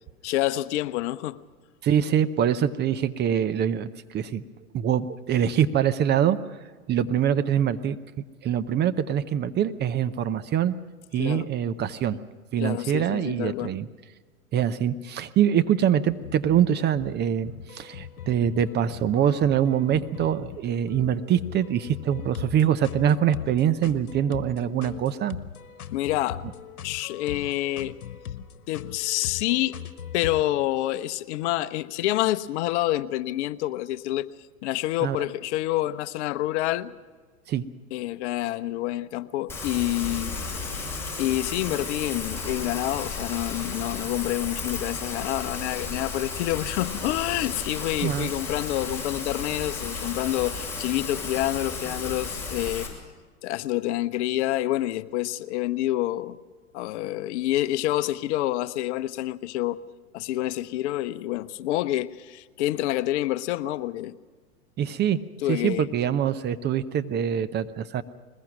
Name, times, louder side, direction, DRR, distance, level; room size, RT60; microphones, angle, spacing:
voice 1, 0.2-1.4 11.2-11.5 12.6-13.7 25.9-26.4 26.8-27.9 28.7-29.8 30.1-34.3 34.6-36.9 37.9-40.4 41.2-52.9 53.4-56.4 56.7-59.8 60.1-64.1 65.4-65.9, left 15 dB, 50° left, 0.9 m, -27 dB
voice 2, 1.8-4.4 4.7-6.4 6.9-8.0 8.4-10.7 11.1-12.2 12.5-13.9 14.5-25.4 35.0-35.2 37.5-37.6 48.0-48.3 64.8-65.2 65.5-68.0, right 9 dB, 25° right, 0.7 m, -24 dB
sound 1, 16.1-30.4, left 8 dB, 75° left, 1.4 m, -40 dB
Rain, 39.5-52.9, left 4 dB, 5° left, 6.5 m, -34 dB
21.5 x 20.5 x 6.1 m
hypercardioid pair, 105°, 44 cm